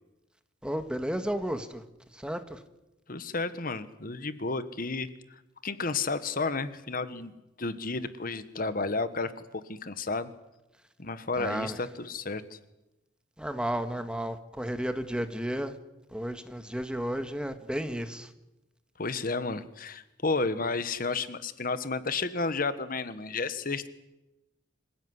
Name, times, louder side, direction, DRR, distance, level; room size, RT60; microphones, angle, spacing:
voice 1, 0.6-1.8 2.1-2.6 11.4-11.8 13.4-15.7 16.1-18.3, equal, 5° right, 8 dB, 1.6 m, -33 dB
voice 2, 3.1-7.3 7.6-10.3 11.0-12.6 19.0-23.9, left 3 dB, 50° left, 13 dB, 1.4 m, -32 dB
26.5 x 16.0 x 9.8 m, 0.97 s
head